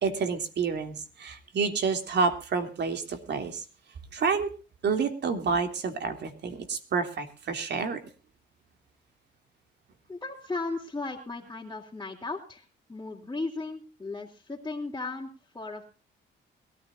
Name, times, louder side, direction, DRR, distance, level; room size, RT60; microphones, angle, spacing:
voice 1, 0.0-3.6 4.1-4.5 4.8-8.0, right 5 dB, 60° right, 7 dB, 3.1 m, -29 dB
voice 2, 10.1-12.6 12.9-15.8, left 3 dB, 15° left, -3 dB, 3.4 m, -36 dB
22.5 x 14.0 x 2.7 m, 0.36 s
cardioid pair, 90°, 20 cm